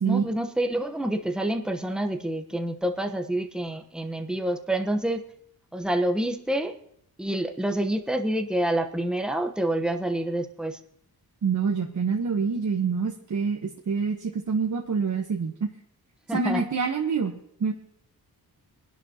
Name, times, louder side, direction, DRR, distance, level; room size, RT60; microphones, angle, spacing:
voice 1, 0.0-5.2 5.7-6.7 7.2-10.8 16.3-16.6, right 1 dB, ahead, 5 dB, 1.0 m, -27 dB
voice 2, 11.4-15.7 16.3-17.7, right 5 dB, 50° right, 1 dB, 1.2 m, -26 dB
22.5 x 11.0 x 2.9 m, 0.68 s
cardioid pair, 95°, 39 cm